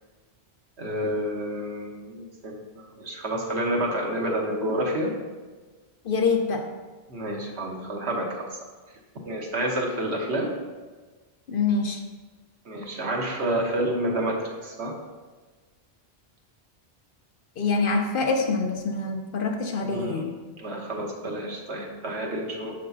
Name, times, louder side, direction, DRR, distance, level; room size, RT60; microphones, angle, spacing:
voice 1, 0.8-5.1 7.1-8.6 9.3-10.5 12.6-15.0 19.9-20.2 20.6-22.7, right 1 dB, 80° right, 0 dB, 1.4 m, -29 dB
voice 2, 6.0-6.6 11.5-12.0 17.6-20.3, left 4 dB, 60° left, 3 dB, 0.8 m, -25 dB
6.7 x 6.7 x 2.7 m, 1.3 s
omnidirectional pair, 1.1 m